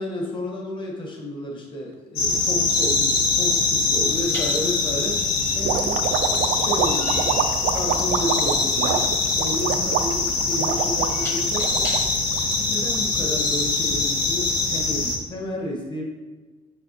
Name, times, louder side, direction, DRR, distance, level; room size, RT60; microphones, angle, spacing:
voice 1, 0.0-5.2 5.5-7.4 7.7-11.9 12.6-16.0, left 1 dB, 30° left, 0 dB, 1.3 m, -31 dB
sound 1, 1.9-2.0 4.3-12.4, left 1 dB, 15° left, 1.0 m, -40 dB
sound 2, 2.2-15.2, left 3 dB, 75° left, 1.4 m, -23 dB
sound 3, 5.6-13.0, right 9 dB, 85° right, 0.5 m, -26 dB
6.5 x 5.9 x 2.9 m, 1.3 s
cardioid pair, 150°, 16 cm